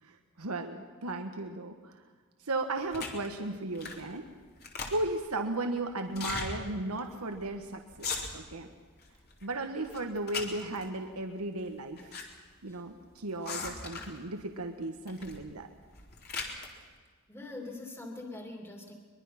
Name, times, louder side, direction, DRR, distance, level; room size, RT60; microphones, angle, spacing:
voice 1, 0.0-2.0 2.4-4.3 4.9-8.7 9.4-12.1 12.6-15.7, right 2 dB, 85° right, 5 dB, 1.4 m, -35 dB
sound 1, 2.9-3.3 3.7-4.1 4.4-5.2 6.1-6.5 7.0-7.1 7.3-7.5 7.9-8.6 9.0-9.5 9.8-10.9 11.7-12.3 12.5-12.6 13.4-14.2 15.1-15.4 15.8-16.7, left 4 dB, 45° left, 3.2 m, -38 dB
voice 2, 17.3-18.9, left 2 dB, 10° left, 2 dB, 2.8 m, -43 dB
23.0 x 22.0 x 5.9 m, 1.5 s
head